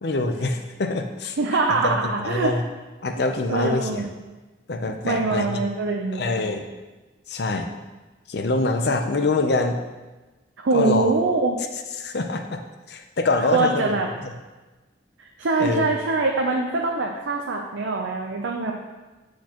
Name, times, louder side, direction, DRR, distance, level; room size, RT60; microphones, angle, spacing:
voice 1, 0.0-1.4 1.8-2.6 3.0-4.1 4.7-5.6 6.1-6.7 7.3-7.7 8.3-9.8 10.7-11.1 12.0-12.6 12.9-14.4 15.6-15.9, left 3 dB, 55° left, 6 dB, 0.5 m, -25 dB
voice 2, 1.4-2.5 3.5-4.1 5.0-6.3 10.6-11.6 13.5-14.1 15.2-18.7, right 3 dB, 75° right, 1 dB, 0.6 m, -23 dB
9.3 x 4.6 x 2.9 m, 1.2 s
head